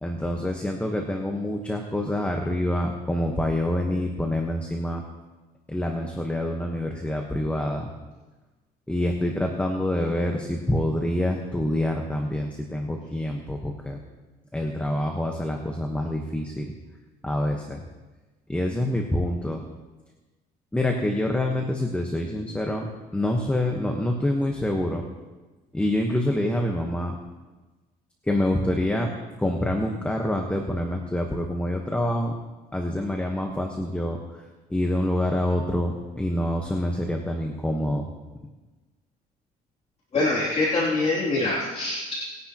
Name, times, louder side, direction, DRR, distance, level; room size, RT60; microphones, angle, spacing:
voice 1, 0.0-5.0 5.7-7.9 8.9-14.0 14.5-16.7 17.2-17.8 18.5-19.6 20.7-22.9 23.1-25.1 25.7-27.2 28.2-29.1 29.4-32.3 32.7-34.4 34.7-38.1, left 1 dB, 5° left, 2 dB, 1.2 m, -26 dB
voice 2, 40.1-42.1, left 2 dB, 40° left, -6 dB, 2.9 m, -24 dB
20.0 x 10.0 x 3.0 m, 1.2 s
cardioid pair, 110°, 17 cm